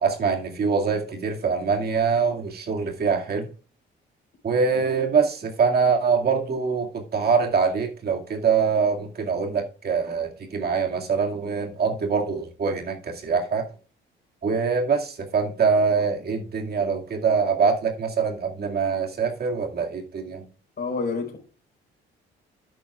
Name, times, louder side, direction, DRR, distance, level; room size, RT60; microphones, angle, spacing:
voice 1, 0.0-3.5 4.4-13.7 14.4-20.5, right 5 dB, 55° right, 2.2 m, -24 dB
voice 2, 20.8-21.4, left 4 dB, 50° left, 4.5 m, -28 dB
12.5 x 9.0 x 2.4 m
cardioid pair, 90°, 20 cm